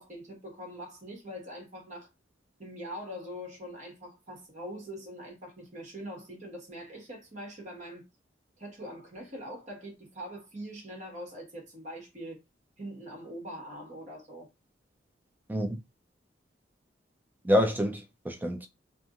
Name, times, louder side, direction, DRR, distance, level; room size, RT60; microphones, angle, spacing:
voice 1, 0.0-2.1 2.6-8.0 8.6-12.4 12.8-14.5, equal, 40° right, 1.3 m, -43 dB
voice 2, 17.4-18.7, equal, 10° right, 0.4 m, -27 dB
2.8 x 2.5 x 2.4 m
head